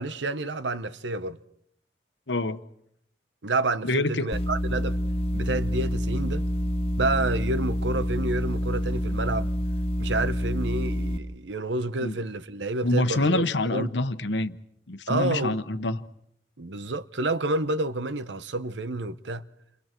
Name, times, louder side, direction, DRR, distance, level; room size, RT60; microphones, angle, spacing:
voice 1, 0.0-1.4 3.4-5.0 5.3-6.5 7.0-9.5 10.0-13.4 13.7-13.9 15.1-15.6 16.6-19.4, right 2 dB, 75° right, 1.0 m, -29 dB
voice 2, 2.3-2.6 3.8-4.3 12.0-12.2 12.8-14.6 14.9-16.0, left 2 dB, 75° left, 1.1 m, -26 dB
sound 1, 4.3-11.2, left 1 dB, 35° left, 1.7 m, -27 dB
30.0 x 29.0 x 4.6 m
head